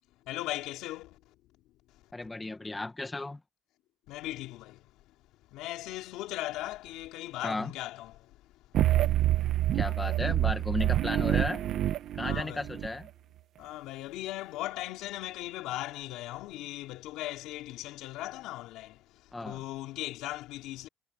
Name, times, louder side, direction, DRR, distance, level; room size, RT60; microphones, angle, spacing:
voice 1, 0.3-1.3 1.9-2.0 4.1-4.9 5.5-8.5 8.9-9.0 9.7-9.8 12.2-12.6 13.6-20.9, left 16 dB, 85° left, 3.1 m, -38 dB
voice 2, 2.1-3.4 7.4-7.7 9.7-11.6 12.1-13.1 19.3-19.6, left 2 dB, 10° left, 1.4 m, -34 dB
sound 1, 8.7-12.9, right 13 dB, 55° right, 1.1 m, -27 dB
cardioid pair, 145°, 0 cm